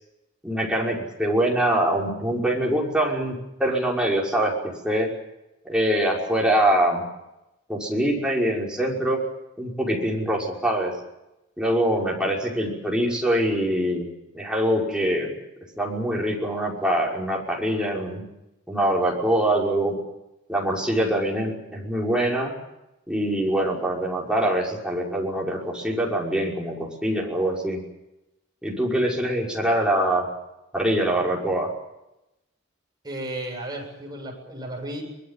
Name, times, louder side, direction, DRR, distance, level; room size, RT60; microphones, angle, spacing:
voice 1, 0.4-5.1 5.6-7.0 7.7-9.2 9.6-10.9 11.6-14.1 14.3-15.3 15.8-18.2 18.7-20.0 20.5-22.5 23.1-27.8 28.6-30.3 30.7-31.7, right 1 dB, 5° right, -3 dB, 5.7 m, -24 dB
voice 2, 33.0-35.0, right 1 dB, 20° right, 1 dB, 7.8 m, -34 dB
24.0 x 21.5 x 7.5 m, 0.92 s
head